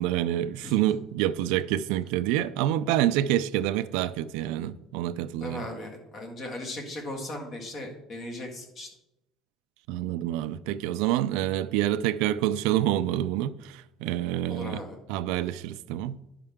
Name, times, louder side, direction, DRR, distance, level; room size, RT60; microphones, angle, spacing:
voice 1, 0.0-5.7 9.9-14.8 15.1-16.2, right 12 dB, 85° right, 0.4 m, -27 dB
voice 2, 5.4-8.9 14.5-15.0, left 1 dB, 35° left, 1.7 m, -37 dB
10.5 x 5.6 x 3.6 m
cardioid pair, 155°, 0 cm